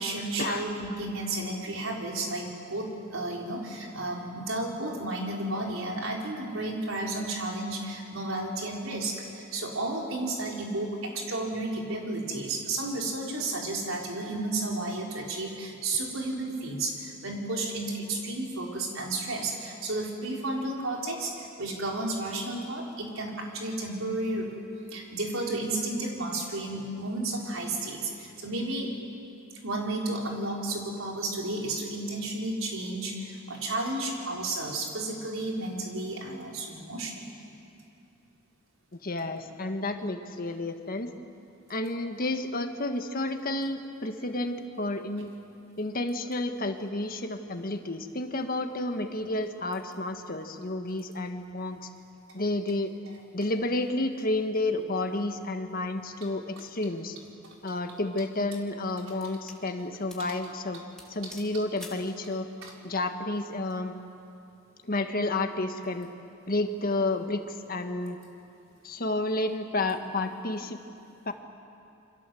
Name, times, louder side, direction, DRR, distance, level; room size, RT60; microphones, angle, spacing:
voice 1, 0.0-24.5 24.9-28.9 29.6-37.4 61.2-61.3 62.6-62.7, right 2 dB, 80° right, -1 dB, 4.5 m, -32 dB
voice 2, 39.0-41.1 41.7-45.3 45.8-51.9 52.3-52.9 53.3-57.2 57.6-60.8 61.1-62.5 62.8-63.9 64.9-66.1 66.5-68.2 68.8-70.8 71.2-71.3, left 2 dB, 45° left, 6 dB, 1.6 m, -31 dB
sound 1, 57.4-57.7 58.4-59.6 60.1-60.3 60.6-60.7 61.0-62.1, left 1 dB, 5° left, 3.1 m, -49 dB
28.0 x 24.5 x 7.8 m, 2.7 s
head